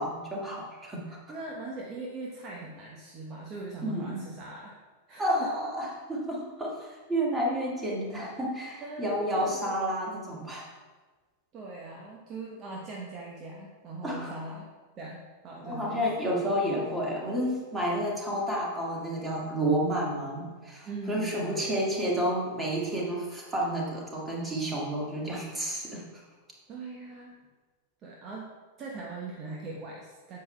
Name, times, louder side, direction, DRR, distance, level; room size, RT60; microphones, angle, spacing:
voice 1, 0.0-1.0 3.8-4.2 5.2-10.7 14.0-14.3 15.6-26.0, equal, 10° right, -3 dB, 1.9 m, -30 dB
voice 2, 1.1-4.7 5.1-5.5 8.8-9.8 11.5-14.7 15.0-16.3 20.8-21.8 26.7-27.5 28.0-28.5 28.8-30.4, right 3 dB, 30° right, -2 dB, 1.0 m, -41 dB
9.1 x 7.7 x 2.3 m, 1.3 s
figure-of-eight pair, 90°, 0 cm